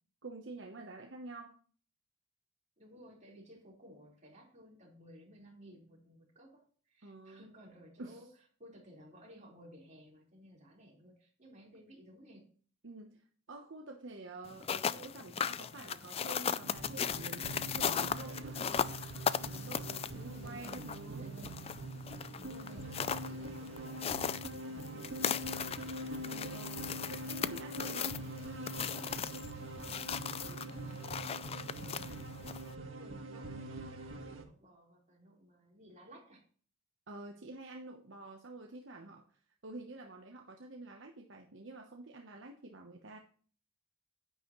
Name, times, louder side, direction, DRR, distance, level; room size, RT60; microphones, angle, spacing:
voice 1, 0.2-1.6 7.0-7.4 8.0-8.2 12.8-13.2 13.5-19.0 19.5-21.3 26.2-26.8 27.3-28.2 37.1-39.4 39.6-43.2, right 2 dB, 65° right, 2 dB, 1.0 m, -48 dB
voice 2, 2.8-8.3 8.6-12.5 20.1-21.7 22.4-26.0 29.4-32.2 33.0-36.4, equal, 35° right, -3 dB, 4.2 m, -57 dB
sound 1, 14.5-32.7, left 7 dB, 30° left, 0.3 m, -38 dB
sound 2, 16.6-34.5, right 1 dB, 85° right, 1.7 m, -44 dB
10.0 x 9.1 x 3.1 m, 0.44 s
head